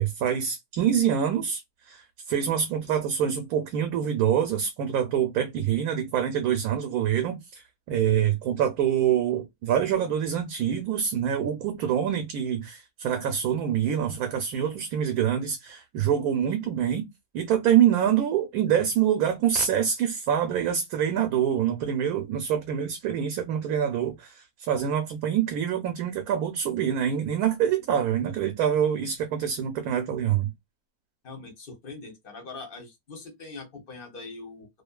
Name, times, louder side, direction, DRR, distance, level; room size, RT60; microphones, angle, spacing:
voice 1, 0.0-1.6 1.9-17.1 17.3-30.5, right 9 dB, 80° right, 1.1 m, -25 dB
voice 2, 31.2-34.7, left 3 dB, 45° left, 0.8 m, -42 dB
2.6 x 2.4 x 2.2 m
omnidirectional pair, 1.6 m